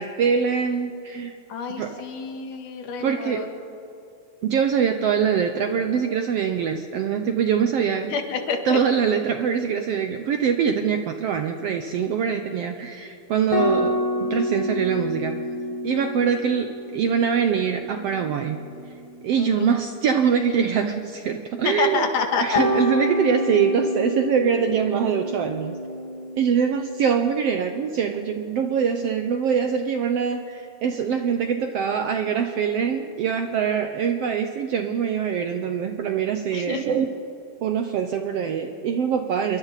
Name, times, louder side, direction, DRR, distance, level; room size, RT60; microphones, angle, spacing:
voice 1, 0.0-1.4 1.8-1.9 3.0-3.5 4.4-8.1 8.7-13.9 14.2-15.4 15.8-18.6 19.2-22.1 22.4-25.8 26.4-37.1 37.6-39.6, right 7 dB, 75° right, 6 dB, 1.5 m, -23 dB
voice 2, 1.5-3.5 8.1-8.8 16.2-16.4 19.4-19.7 21.6-22.6 36.5-36.9, left 5 dB, 75° left, 4 dB, 3.2 m, -28 dB
sound 1, 13.5-20.2 22.5-27.5, left 1 dB, 20° left, 1.0 m, -29 dB
27.5 x 23.0 x 4.1 m, 2.6 s
omnidirectional pair, 3.7 m